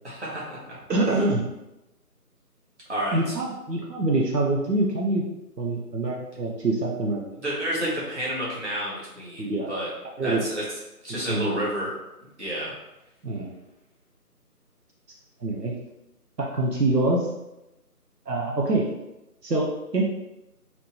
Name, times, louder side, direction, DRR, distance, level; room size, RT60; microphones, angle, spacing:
voice 1, 0.0-0.8 2.9-3.3 7.4-9.9 10.2-10.6 11.0-11.9 12.4-12.7, equal, 45° right, -7 dB, 1.4 m, -30 dB
voice 2, 0.9-1.4 3.1-5.3 5.6-7.2 9.4-9.7 10.2-10.4 11.1-11.6 13.2-13.5 15.4-15.8 16.4-17.3 18.3-18.9 19.4-20.0, right 2 dB, 85° right, -2 dB, 0.8 m, -25 dB
3.4 x 2.9 x 2.8 m, 0.94 s
figure-of-eight pair, 165°, 47 cm